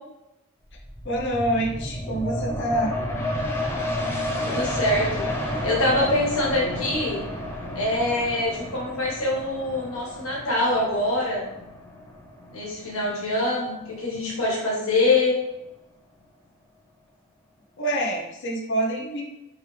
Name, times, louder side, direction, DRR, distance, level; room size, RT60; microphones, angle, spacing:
Ghosts moaning, 0.7-14.0 14.4-14.5, left 1 dB, 10° left, 0.6 m, -31 dB
voice 1, 1.0-2.9 17.8-19.2, right 1 dB, 60° left, -1 dB, 0.6 m, -26 dB
voice 2, 4.5-7.2 7.7-11.4 12.5-15.4, left 2 dB, 85° left, -4 dB, 1.5 m, -24 dB
3.5 x 3.3 x 3.3 m, 0.93 s
head